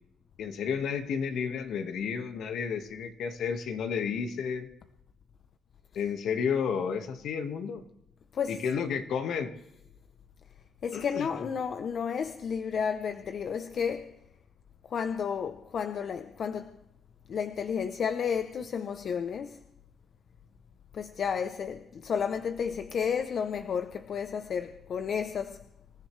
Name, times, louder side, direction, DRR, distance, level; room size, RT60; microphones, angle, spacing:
voice 1, 0.4-4.7 5.9-7.8 8.5-9.5 10.9-11.3, left 6 dB, 75° left, 1.7 m, -31 dB
voice 2, 10.8-14.2 14.9-16.8 17.3-19.6 20.9-25.6, left 7 dB, 55° left, 0.7 m, -32 dB
26.0 x 14.5 x 3.3 m
cardioid pair, 90°, 0 cm